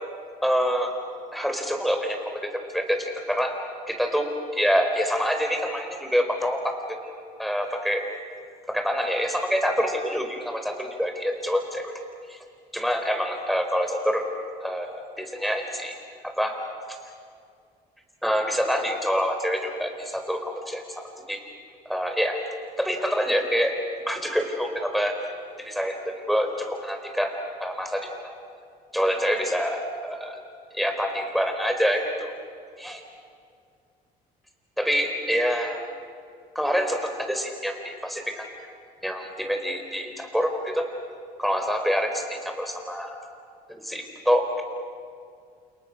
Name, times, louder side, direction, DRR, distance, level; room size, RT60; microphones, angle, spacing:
voice 1, 0.4-0.9 1.3-3.5 3.9-7.0 7.4-8.0 8.7-11.9 12.3-12.4 12.7-14.2 14.6-16.0 16.2-16.6 16.9-17.0 18.2-21.0 21.3-21.4 21.9-22.4 22.8-23.7 24.1-25.1 25.6-27.3 27.6-28.4 28.9-30.4 30.7-32.3 32.8-33.0 34.8-35.8 36.5-38.5 39.0-40.9 41.4-43.2 43.7-44.6, equal, ahead, 4 dB, 4.4 m, -26 dB
30.0 x 28.5 x 6.5 m, 2.2 s
cardioid pair, 110°, 17 cm